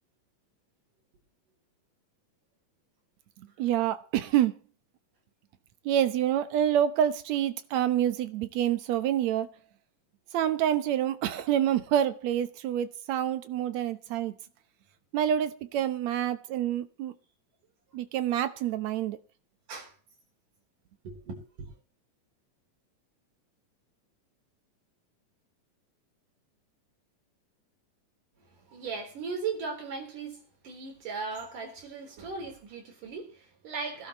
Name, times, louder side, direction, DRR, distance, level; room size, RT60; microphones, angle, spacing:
voice 1, 3.6-4.6 5.9-9.5 10.3-14.3 15.1-17.1 17.9-19.2, right 10 dB, 65° right, 2.1 m, -27 dB
voice 2, 21.0-21.7 28.4-34.1, right 4 dB, 85° right, 5.5 m, -38 dB
24.0 x 12.0 x 3.1 m
omnidirectional pair, 3.6 m